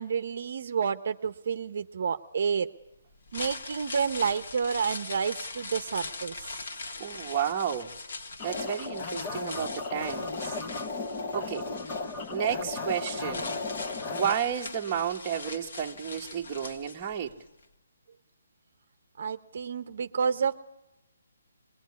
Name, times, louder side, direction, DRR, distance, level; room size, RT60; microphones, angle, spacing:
voice 1, 0.0-2.7 3.3-6.6 19.2-20.5, right 6 dB, 45° right, 12 dB, 0.9 m, -30 dB
sound 1, 3.1-17.3 17.6-17.7, left 3 dB, 50° left, 2.4 m, -41 dB
voice 2, 7.0-7.9 8.4-10.6 11.3-11.7 12.3-13.6 14.1-17.4, right 8 dB, 15° right, 0 dB, 1.2 m, -32 dB
sound 2, 8.4-14.3, left 3 dB, 20° left, 0.9 m, -35 dB
24.0 x 21.0 x 9.6 m, 0.90 s
hypercardioid pair, 175°, 0 cm